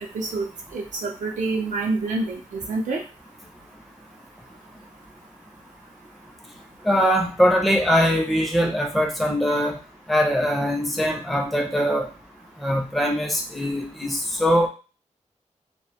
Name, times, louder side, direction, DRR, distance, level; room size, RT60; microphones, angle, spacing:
voice 1, 0.1-0.4 0.7-2.4 2.7-3.0, right 3 dB, 80° right, 1 dB, 0.5 m, -26 dB
voice 2, 6.9-9.8 10.1-12.1 12.6-14.7, equal, ahead, 1 dB, 0.4 m, -22 dB
2.4 x 2.1 x 2.7 m, 0.34 s
wide cardioid pair, 135°, 13 cm